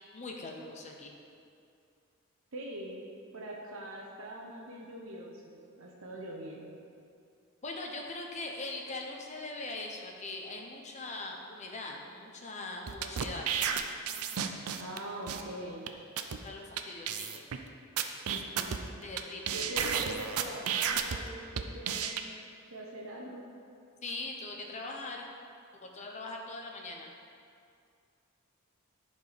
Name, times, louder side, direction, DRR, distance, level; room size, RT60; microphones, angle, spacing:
voice 1, 0.1-1.1 7.6-13.6 16.4-17.4 19.0-19.7 24.0-25.3 25.7-27.1, left 2 dB, 30° left, 1 dB, 0.9 m, -41 dB
voice 2, 2.5-3.0 3.3-6.8 14.8-15.9 18.3-18.8 19.5-22.2 22.7-23.5, right 1 dB, 65° right, -2 dB, 1.0 m, -43 dB
sound 1, 12.9-15.0 15.3-15.4 15.9-16.0 16.2-16.4 16.8-16.9 17.1-17.6 18.0-19.2 19.5-21.2 21.6-22.2, right 8 dB, 85° right, 0.5 m, -32 dB
11.0 x 4.5 x 5.1 m, 2.4 s
head